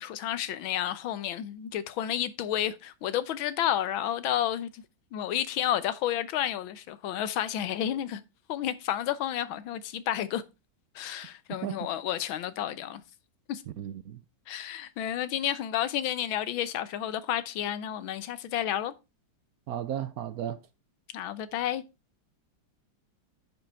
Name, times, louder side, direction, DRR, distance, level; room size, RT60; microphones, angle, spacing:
voice 1, 0.0-4.8 5.1-8.2 8.5-10.4 10.9-13.0 13.5-13.6 14.5-18.9 21.1-21.8, left 11 dB, 80° left, 1.6 m, -31 dB
voice 2, 13.8-14.2 19.7-20.6, right 10 dB, 75° right, 0.8 m, -34 dB
9.5 x 5.0 x 4.5 m
omnidirectional pair, 2.2 m